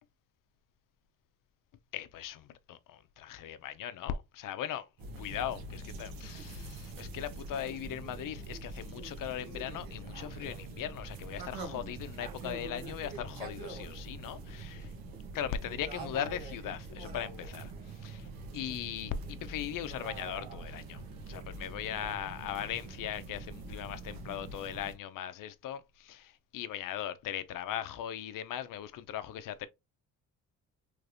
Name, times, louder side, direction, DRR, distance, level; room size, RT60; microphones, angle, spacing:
voice 1, 1.9-4.9 5.2-14.9 15.3-17.7 18.0-18.3 18.5-21.0 21.3-29.7, left 10 dB, 70° left, 0.6 m, -39 dB
sound 1, 5.0-24.9, right 3 dB, 85° right, 1.0 m, -44 dB
3.3 x 3.2 x 2.5 m
supercardioid pair, 65°, 34 cm